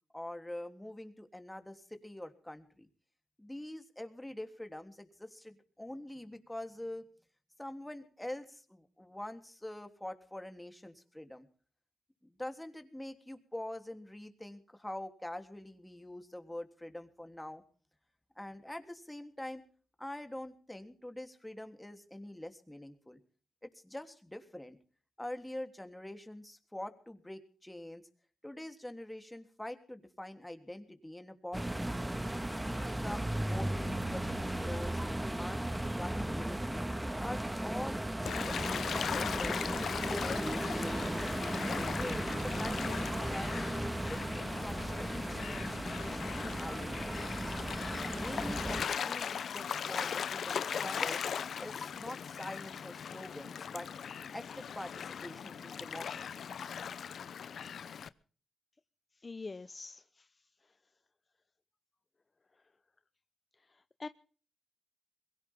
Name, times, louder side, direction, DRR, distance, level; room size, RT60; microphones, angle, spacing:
voice 1, 0.1-2.9 3.4-7.0 7.6-11.5 12.2-17.6 18.3-19.6 20.0-23.2 23.6-24.8 25.2-28.1 28.4-32.1 32.5-36.8 37.2-39.6 40.0-41.2 41.7-43.6 44.0-47.2 48.2-51.2 51.6-53.9 54.3-56.5, left 1 dB, 10° left, 3.3 m, -45 dB
sound 1, 31.5-48.8, right 1 dB, 15° right, 1.7 m, -36 dB
Gull seagull / Waves surf, 38.3-58.1, left 7 dB, 75° left, 0.8 m, -39 dB
voice 2, 59.1-60.7 63.6-64.1, left 3 dB, 40° left, 0.8 m, -46 dB
22.5 x 17.0 x 3.7 m
cardioid pair, 60°, 0 cm